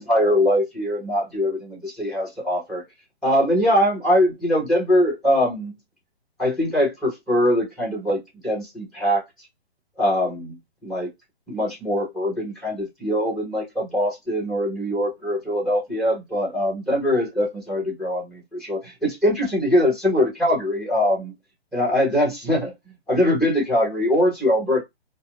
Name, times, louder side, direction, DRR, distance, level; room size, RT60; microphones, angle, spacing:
voice 1, 0.0-2.8 3.2-5.7 6.4-9.2 10.0-10.6 10.8-11.1 11.5-21.3 21.7-22.7 23.1-24.8, left 1 dB, ahead, 1.6 m, -22 dB
4.4 x 2.0 x 2.5 m
hypercardioid pair, 140°, 31 cm